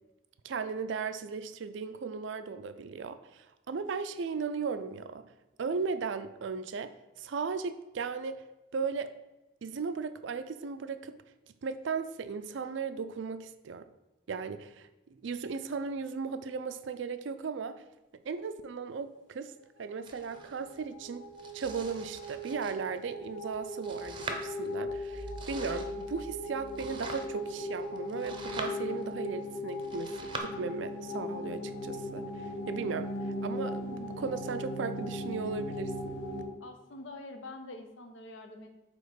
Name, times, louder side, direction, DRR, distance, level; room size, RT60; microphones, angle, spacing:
voice 1, 0.4-5.2 5.6-6.9 7.2-8.4 8.7-9.1 9.6-11.2 11.6-13.8 14.3-17.7 18.2-19.5 19.8-21.2 21.5-33.1 33.4-36.1, right 5 dB, 75° right, 10 dB, 0.4 m, -36 dB
Domestic sounds home sounds, 20.0-30.4, right 3 dB, 25° right, 0.6 m, -45 dB
sound 1, 20.1-36.4, left 1 dB, 65° left, 1.9 m, -38 dB
sound 2, 24.8-27.5, right 2 dB, 40° left, 0.9 m, -48 dB
voice 2, 36.6-38.8, left 2 dB, 85° left, 5 dB, 0.9 m, -45 dB
7.8 x 3.0 x 5.1 m, 1.0 s
head